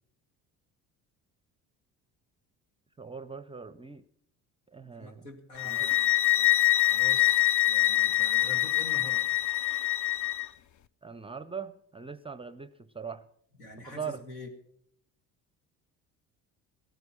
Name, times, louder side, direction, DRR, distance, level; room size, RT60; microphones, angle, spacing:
voice 1, 3.0-4.0 4.7-5.3 5.6-5.9 11.0-13.2 13.9-14.2, right 6 dB, 10° right, 16 dB, 0.6 m, -41 dB
voice 2, 4.8-9.3 13.6-14.5, left 2 dB, 80° left, 5 dB, 2.4 m, -46 dB
sound 1, 5.6-10.5, left 16 dB, 40° left, 0.7 m, -25 dB
17.0 x 15.5 x 4.4 m, 0.69 s
figure-of-eight pair, 55°, 47 cm